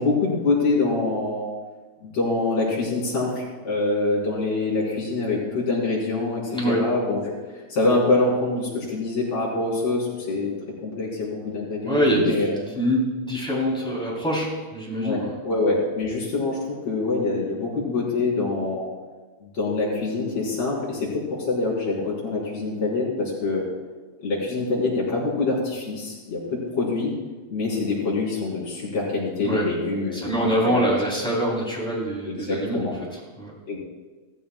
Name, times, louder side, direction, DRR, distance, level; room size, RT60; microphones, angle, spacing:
voice 1, 0.0-1.5 2.0-10.5 10.8-12.6 15.0-18.9 19.4-23.7 24.2-27.1 27.5-31.0 32.3-32.9 33.7-33.8, left 3 dB, 65° left, -6 dB, 5.2 m, -25 dB
voice 2, 6.5-6.8 11.8-15.4 29.4-29.7 30.1-33.5, equal, ahead, -5 dB, 3.2 m, -25 dB
16.0 x 14.5 x 2.4 m, 1.3 s
omnidirectional pair, 3.3 m